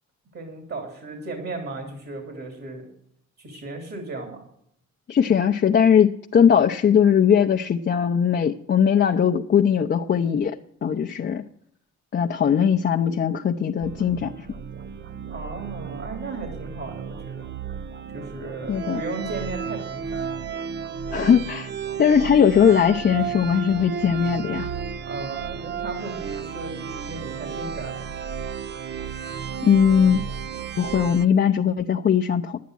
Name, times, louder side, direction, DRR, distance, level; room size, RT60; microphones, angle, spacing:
voice 1, 0.3-2.9 3.4-4.5 15.3-17.5 18.1-20.3 25.1-28.1, right 3 dB, 50° right, 2 dB, 3.0 m, -35 dB
voice 2, 5.1-10.6 10.8-11.4 12.1-14.3 18.7-19.0 21.1-21.7 22.0-24.7 29.6-30.2 30.8-32.6, left 8 dB, 35° left, 2 dB, 0.6 m, -19 dB
sound 1, 13.8-31.3, right 7 dB, 35° right, 0.6 m, -33 dB
11.0 x 9.4 x 6.2 m, 0.69 s
cardioid pair, 90°, 30 cm